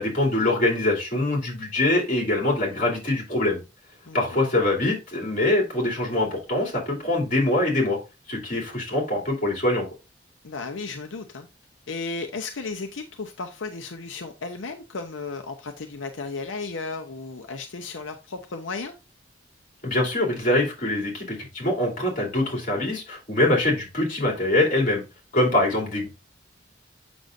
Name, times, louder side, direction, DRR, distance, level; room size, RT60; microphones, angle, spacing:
voice 1, 0.0-3.6 4.1-8.0 8.3-9.9 19.8-25.0 25.3-26.1, left 1 dB, 45° left, 2.8 m, -23 dB
voice 2, 10.4-11.5 11.9-18.9, left 4 dB, 85° left, 0.7 m, -34 dB
7.8 x 6.1 x 2.6 m
head